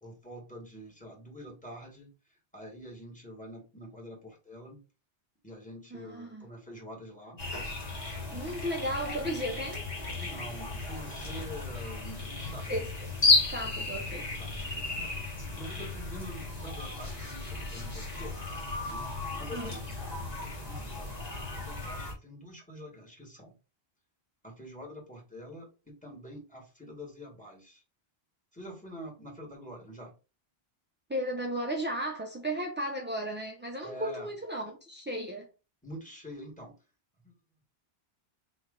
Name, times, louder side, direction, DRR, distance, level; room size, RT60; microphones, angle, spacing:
voice 1, 0.0-2.1 2.5-4.8 5.4-7.4 8.3-8.6 10.2-12.7 13.6-13.7 14.2-15.0 15.5-18.3 18.9-19.9 20.2-23.5 24.4-27.8 28.5-30.1 33.8-34.3 35.8-36.8 37.2-37.3, equal, 5° left, 1.7 m, -46 dB
voice 2, 5.9-6.5 8.3-9.9 12.7-13.1 13.5-14.3 19.5-19.7 31.1-35.5, equal, 15° right, 0.4 m, -35 dB
sound 1, 7.4-22.1, left 3 dB, 40° left, 1.6 m, -33 dB
4.0 x 3.1 x 3.7 m
omnidirectional pair, 1.1 m